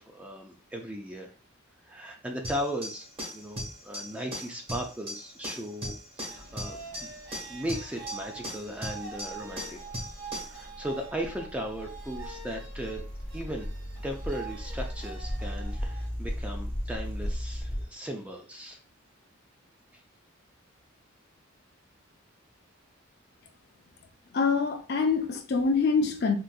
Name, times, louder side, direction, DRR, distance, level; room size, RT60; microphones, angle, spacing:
voice 1, 0.0-1.3 1.8-3.1 3.3-7.1 7.5-9.9 10.3-13.0 13.3-13.7 14.0-18.8, equal, 5° right, 0.3 m, -37 dB
sound 1, 2.4-10.6, equal, 25° right, 1.1 m, -39 dB
sound 2, 6.3-16.1, right 5 dB, 70° right, 1.6 m, -45 dB
sound 3, 9.3-17.8, equal, 10° left, 0.7 m, -36 dB
voice 2, 24.3-26.4, left 4 dB, 50° left, 0.5 m, -25 dB
3.8 x 2.6 x 2.2 m
head